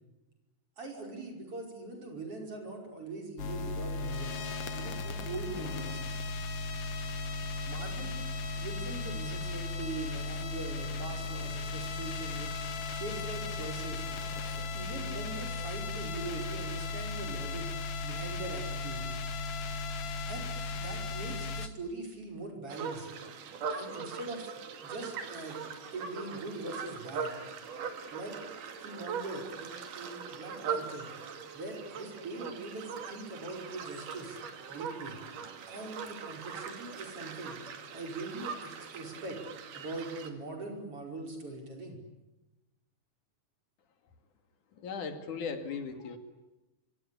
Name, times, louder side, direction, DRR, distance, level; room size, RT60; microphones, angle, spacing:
voice 1, 0.8-4.4 4.7-6.0 7.7-8.2 8.5-12.6 12.9-14.1 14.5-17.7 18.0-19.1 20.3-23.1 23.7-24.5 24.8-25.6 25.9-27.4 28.1-28.4 28.8-31.1 31.5-34.4 34.7-35.2 35.7-37.6 37.9-39.4 39.7-42.0, right 2 dB, 45° right, 2 dB, 6.2 m, -42 dB
sound 1, 3.4-21.7, left 3 dB, 55° left, 2.2 m, -36 dB
sound 2, 22.7-40.3, right 6 dB, 90° right, 3.7 m, -41 dB
voice 2, 44.7-46.2, left 5 dB, 75° left, 8 dB, 3.8 m, -37 dB
26.5 x 25.5 x 8.5 m, 1.0 s
omnidirectional pair, 3.6 m